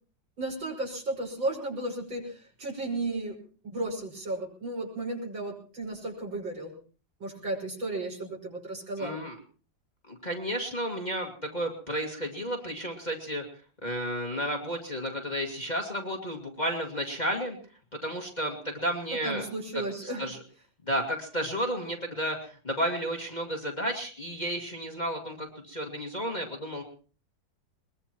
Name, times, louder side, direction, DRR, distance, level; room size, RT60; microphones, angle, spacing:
voice 1, 0.4-3.4 3.6-6.7 7.2-9.2 19.2-20.3, right 2 dB, 80° right, -1 dB, 6.3 m, -34 dB
voice 2, 9.0-9.4 10.1-13.4 13.8-17.6 18.0-19.4 20.2-20.4 20.9-26.8, equal, 20° left, 0 dB, 2.2 m, -32 dB
22.0 x 22.0 x 3.0 m, 0.40 s
omnidirectional pair, 2.1 m